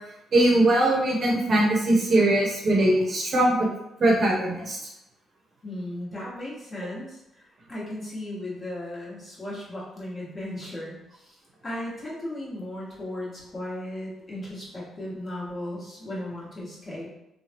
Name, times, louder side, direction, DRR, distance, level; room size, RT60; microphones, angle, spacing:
voice 1, 0.3-3.7 4.0-4.8, right 1 dB, 50° right, -2 dB, 0.7 m, -21 dB
voice 2, 5.6-11.4 11.6-17.1, left 1 dB, 30° left, -7 dB, 1.3 m, -36 dB
3.2 x 2.2 x 2.8 m, 0.86 s
cardioid pair, 90°, 0 cm